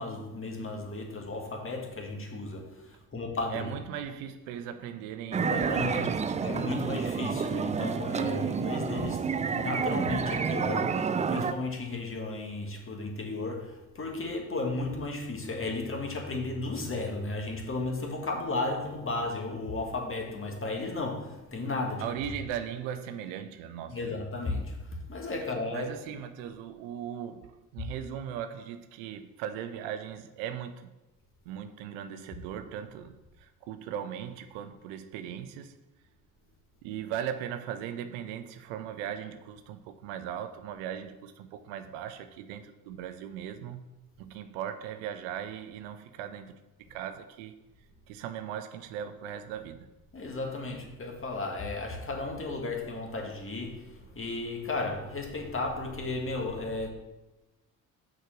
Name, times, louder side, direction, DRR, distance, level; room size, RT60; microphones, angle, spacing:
voice 1, 0.0-3.8 5.4-6.1 6.4-22.1 23.9-26.2 50.1-56.9, left 3 dB, 30° left, 1.9 m, -34 dB
voice 2, 3.5-6.5 22.0-24.2 25.7-30.9 31.5-35.8 36.8-43.8 44.2-47.6 48.1-49.9, right 9 dB, 65° right, 0.8 m, -38 dB
sound 1, 5.3-11.5, right 6 dB, 15° right, 0.4 m, -29 dB
6.5 x 5.1 x 6.0 m
hypercardioid pair, 60°, 45 cm